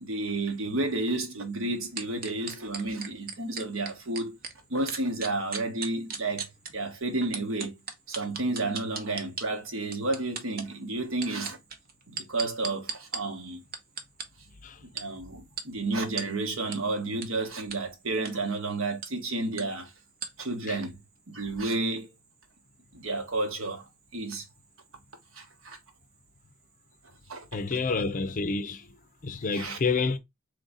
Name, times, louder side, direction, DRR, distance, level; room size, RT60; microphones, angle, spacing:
voice 1, 0.0-4.3 4.7-6.5 6.7-7.7 8.1-11.6 12.1-13.6 14.8-19.9 20.4-21.0 21.3-22.1 22.9-23.8 24.1-24.4 25.3-25.8 27.3-27.4 29.5-29.8, right 2 dB, 75° right, 1.3 m, -31 dB
sound 1, 2.0-4.5 4.9-6.7 7.3-9.5 9.9-10.7 11.1-13.2 13.7-14.2 15.0-15.1 15.6-15.7 16.2-16.3 16.7-16.8 17.2-17.3 17.7-17.8 18.1-18.3 19.0-19.1 19.6-19.7 20.2-20.3, right 5 dB, 45° right, 0.9 m, -35 dB
voice 2, 27.5-28.9 29.2-30.2, left 4 dB, 40° left, 0.5 m, -28 dB
3.8 x 3.2 x 3.9 m
head